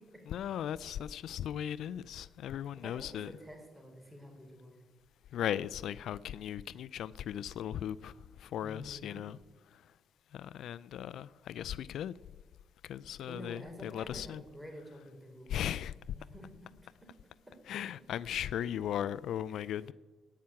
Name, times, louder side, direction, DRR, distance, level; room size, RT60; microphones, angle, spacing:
voice 1, 0.3-3.3 5.3-9.4 9.7-9.8 10.3-12.1 12.8-14.4 15.5-15.9 17.7-19.9, left 10 dB, 75° left, 0.3 m, -37 dB
voice 2, 2.8-4.8 8.6-9.3 13.2-15.5 16.2-16.5 17.5-17.6 19.5-19.7, equal, 10° right, 4.0 m, -49 dB
17.5 x 5.8 x 8.6 m
cardioid pair, 90°, 0 cm